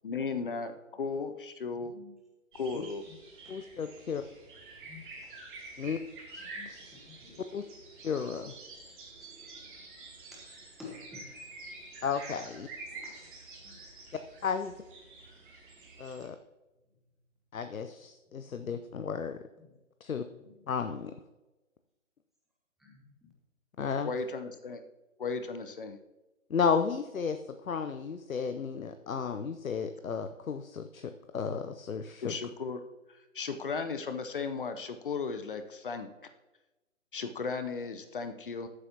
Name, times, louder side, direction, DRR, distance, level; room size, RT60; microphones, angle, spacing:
voice 1, 0.0-1.9 2.6-3.0 24.0-24.8 25.2-26.0 32.2-32.8 33.1-36.1 37.1-38.7, left 4 dB, 40° left, 9 dB, 0.7 m, -35 dB
voice 2, 1.7-2.2 2.8-2.9 3.4-3.6 4.8-5.3 6.4-7.7 9.2-9.3 10.3-10.5 10.8-11.3 11.6-11.7 12.5-12.6 12.9-13.2 13.6-13.8 15.2-15.3 19.6-19.8 20.3-20.7 22.8-23.3, left 4 dB, ahead, -3 dB, 0.8 m, -52 dB
sound 1, 2.5-16.3, right 3 dB, 40° right, 2.7 m, -48 dB
voice 3, 3.5-4.2 5.8-6.0 6.3-6.4 6.7-6.8 7.5-7.6 8.0-8.5 12.0-12.7 14.4-14.7 16.0-16.4 17.5-19.4 20.0-20.2 20.7-21.1 23.8-24.1 26.5-27.4 27.6-32.3, left 6 dB, 85° left, 9 dB, 0.7 m, -33 dB
14.0 x 8.1 x 2.8 m, 1.1 s
figure-of-eight pair, 145°, 40 cm